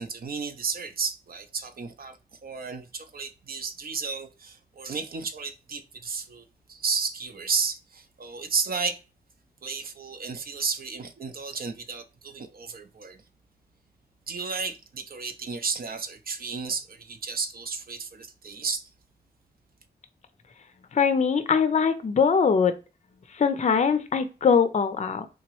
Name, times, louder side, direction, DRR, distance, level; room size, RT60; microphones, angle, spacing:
voice 1, 0.0-2.2 2.4-9.0 9.6-13.2 14.3-18.8, right 5 dB, 60° right, 0.6 m, -33 dB
voice 2, 20.9-22.7 23.3-25.2, left 6 dB, 40° left, 0.5 m, -22 dB
3.7 x 2.9 x 3.0 m
cardioid pair, 65°, 18 cm